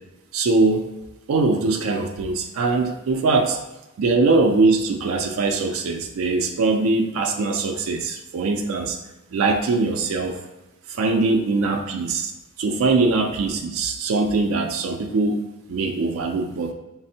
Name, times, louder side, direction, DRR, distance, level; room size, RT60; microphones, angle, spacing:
voice 1, 0.3-0.9 1.3-3.6 4.0-9.0 9.3-10.4 10.9-12.3 12.6-16.7, right 3 dB, 85° right, 3 dB, 0.4 m, -22 dB
4.1 x 2.0 x 2.7 m, 0.99 s
head